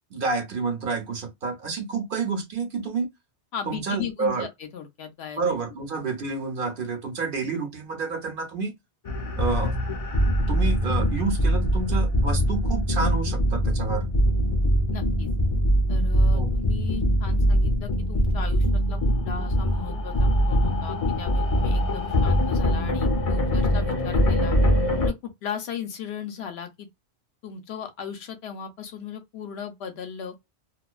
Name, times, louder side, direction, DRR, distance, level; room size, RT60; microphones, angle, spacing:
voice 1, 0.1-3.1 3.7-4.5 5.4-8.7 9.4-9.8 10.5-14.1 16.3-16.5, right 4 dB, 55° right, 0.8 m, -29 dB
voice 2, 3.5-5.4 14.9-15.3 15.9-19.0 19.2-24.6 25.0-26.9 27.4-30.3, left 7 dB, 70° left, 0.8 m, -37 dB
sound 1, 9.0-25.1, equal, 35° left, 0.7 m, -23 dB
2.3 x 2.2 x 2.3 m
omnidirectional pair, 1.2 m